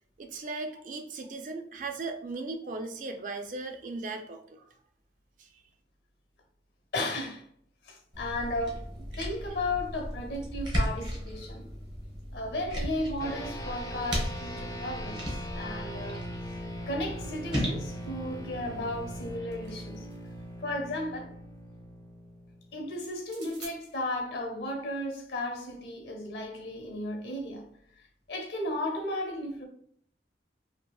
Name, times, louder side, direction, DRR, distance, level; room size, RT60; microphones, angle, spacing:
voice 1, 0.2-4.7 5.4-5.6, right 3 dB, 45° right, 0.3 m, -37 dB
voice 2, 6.9-7.4 7.8-11.7 12.3-16.3 16.9-20.1 20.6-21.3 22.7-27.7 28.3-29.6, left 1 dB, 70° left, 0.7 m, -34 dB
sound 1, 8.1-19.4, equal, 25° right, 0.7 m, -36 dB
sound 2, 13.2-22.9, equal, 20° left, 0.5 m, -41 dB
sound 3, 19.5-20.4 23.2-23.8, right 3 dB, 90° right, 0.8 m, -49 dB
2.7 x 2.6 x 2.2 m
head